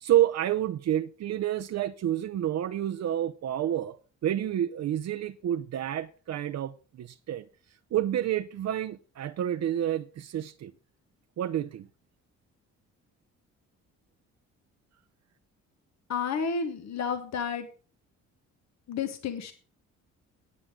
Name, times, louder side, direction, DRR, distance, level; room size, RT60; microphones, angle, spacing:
voice 1, 0.0-4.0 4.2-7.5 7.9-10.7 11.4-11.9, right 11 dB, 60° right, 0.7 m, -29 dB
voice 2, 16.1-17.7 18.9-19.5, left 6 dB, 65° left, 1.4 m, -31 dB
18.0 x 7.4 x 3.8 m
cardioid pair, 90°, 30 cm